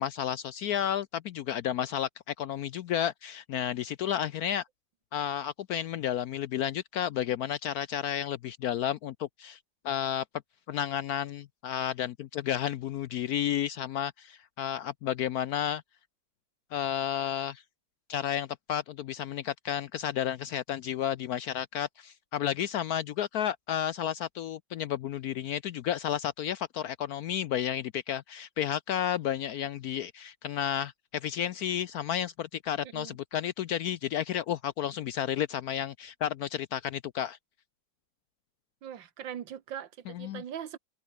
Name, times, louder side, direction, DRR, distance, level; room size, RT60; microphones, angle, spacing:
voice 1, 0.0-4.6 5.1-9.6 9.8-10.2 10.7-15.8 16.7-17.6 18.1-37.4 40.1-40.4, left 10 dB, 70° left, 0.9 m, -32 dB
voice 2, 32.8-33.2 38.8-40.8, right 9 dB, 80° right, 2.0 m, -41 dB
open air
omnidirectional pair, 2.0 m